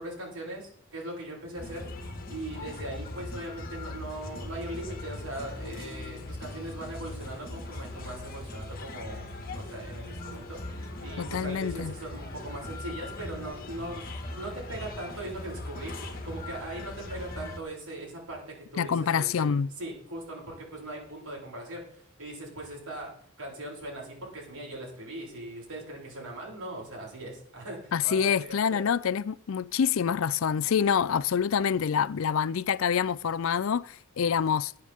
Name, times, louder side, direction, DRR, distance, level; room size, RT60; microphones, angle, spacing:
voice 1, 0.0-1.9 2.3-10.6 11.0-19.5 19.8-28.8, right 1 dB, 85° right, 6.9 m, -40 dB
sound 1, 1.5-17.6, left 2 dB, 40° left, 1.8 m, -40 dB
voice 2, 11.2-11.9 18.8-19.7 27.9-34.7, left 7 dB, 65° left, 0.4 m, -26 dB
21.0 x 8.8 x 3.6 m
head